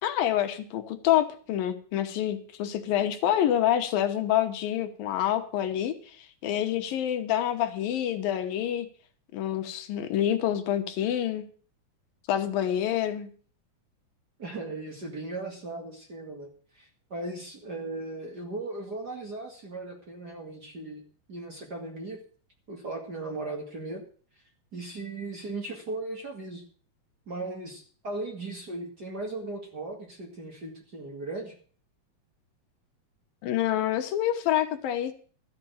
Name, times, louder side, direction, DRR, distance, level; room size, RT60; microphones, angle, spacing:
voice 1, 0.0-8.9 9.3-11.5 12.3-13.3 33.4-35.1, left 11 dB, 85° left, 7 dB, 2.8 m, -27 dB
voice 2, 14.4-16.5 16.7-21.0 21.3-22.2 22.7-24.0 24.7-26.6 27.3-31.5, right 2 dB, 35° right, 1 dB, 2.1 m, -37 dB
13.5 x 6.0 x 9.1 m, 0.44 s
omnidirectional pair, 4.1 m